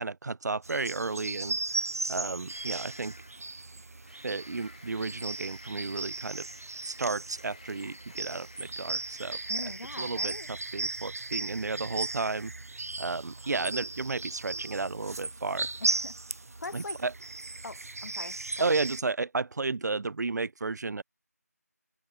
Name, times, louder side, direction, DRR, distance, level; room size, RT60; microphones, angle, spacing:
voice 1, 0.0-3.1 4.2-6.5 6.8-9.4 10.0-12.5 13.0-15.7 16.7-17.1 18.6-21.0, right 3 dB, 80° right, 0.4 m, -33 dB
sound 1, 0.6-19.0, right 3 dB, 60° right, 0.8 m, -36 dB
sound 2, 2.5-3.5 3.9-9.5, left 3 dB, 30° left, 0.7 m, -54 dB
voice 2, 9.5-10.5 15.8-16.2 16.6-17.0 17.6-18.8, left 3 dB, 85° left, 0.7 m, -41 dB
open air
figure-of-eight pair, 180°, 9 cm